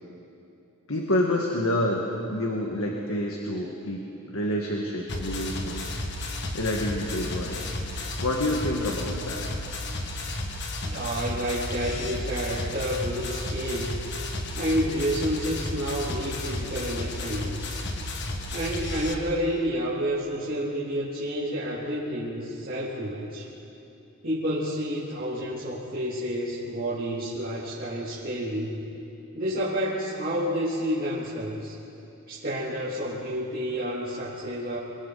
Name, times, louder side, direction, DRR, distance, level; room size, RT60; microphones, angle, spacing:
voice 1, 0.9-5.9 6.5-7.6 8.2-9.5, left 1 dB, 70° left, 0 dB, 1.8 m, -28 dB
sound 1, 5.1-19.1, left 2 dB, 50° left, 1.7 m, -33 dB
voice 2, 10.8-14.0 14.5-17.8 18.5-23.5 24.2-28.8 29.3-31.7 32.3-34.8, equal, 40° right, -10 dB, 3.2 m, -29 dB
29.5 x 22.5 x 4.1 m, 2.8 s
head